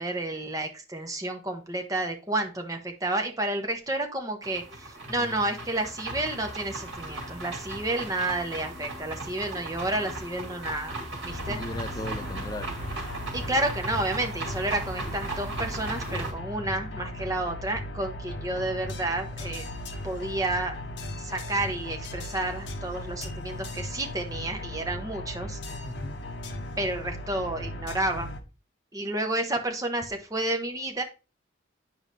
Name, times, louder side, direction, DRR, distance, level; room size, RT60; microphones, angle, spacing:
voice 1, 0.0-10.9 11.2-11.6 13.3-19.6 20.0-20.7 21.2-25.6 26.8-28.3 28.9-31.0, right 2 dB, 20° right, 0.9 m, -30 dB
sound 1, 4.4-16.3, right 2 dB, 65° right, 2.4 m, -37 dB
voice 2, 5.0-5.6 11.5-12.9 25.8-26.2, left 1 dB, 20° left, 0.3 m, -38 dB
sound 2, 11.3-28.4, left 1 dB, 70° left, 0.9 m, -37 dB
9.3 x 4.8 x 2.6 m
head